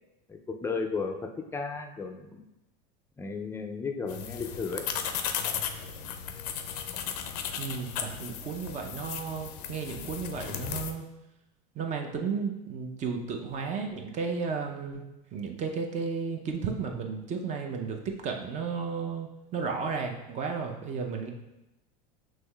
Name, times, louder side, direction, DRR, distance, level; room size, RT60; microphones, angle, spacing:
voice 1, 0.3-2.4 3.2-4.9, left 4 dB, 15° left, 4 dB, 0.4 m, -34 dB
sound 1, 4.1-10.9, left 8 dB, 80° left, 0.5 m, -36 dB
voice 2, 7.6-11.0 11.8-15.0 15.3-21.3, right 5 dB, 35° right, 3 dB, 0.6 m, -33 dB
6.1 x 3.1 x 2.3 m, 0.95 s
supercardioid pair, 115°, 20 cm